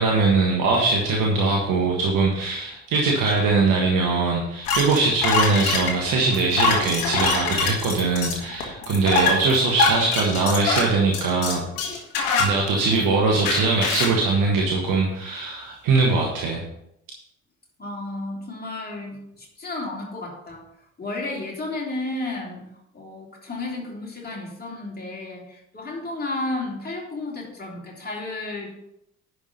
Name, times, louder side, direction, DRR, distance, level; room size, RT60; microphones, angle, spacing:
voice 1, 0.0-11.7 12.4-16.6, right 3 dB, 50° right, -1 dB, 1.6 m, -21 dB
sound 1, 4.7-13.0 13.5-14.2, left 4 dB, 60° left, 1.9 m, -24 dB
voice 2, 17.8-20.7 21.0-28.7, left 2 dB, 25° left, -3 dB, 3.4 m, -32 dB
10.5 x 4.9 x 5.5 m, 0.78 s
figure-of-eight pair, 50°, 40 cm